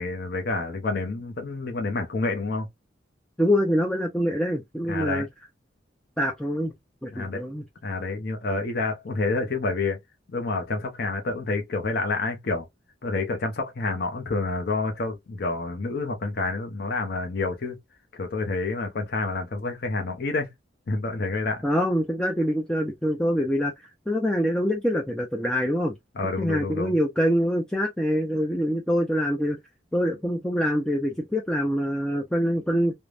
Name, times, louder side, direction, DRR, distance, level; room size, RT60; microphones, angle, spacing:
voice 1, 0.0-2.7 4.9-5.3 7.1-7.4 7.8-10.0 10.3-12.7 13.0-17.8 18.1-20.5 20.9-21.6 26.2-26.9, left 3 dB, 55° left, 0.6 m, -28 dB
voice 2, 3.4-5.3 6.2-6.7 7.0-7.6 21.6-25.9 26.4-29.6 29.9-32.9, equal, 5° left, 0.4 m, -25 dB
3.2 x 2.1 x 2.4 m
head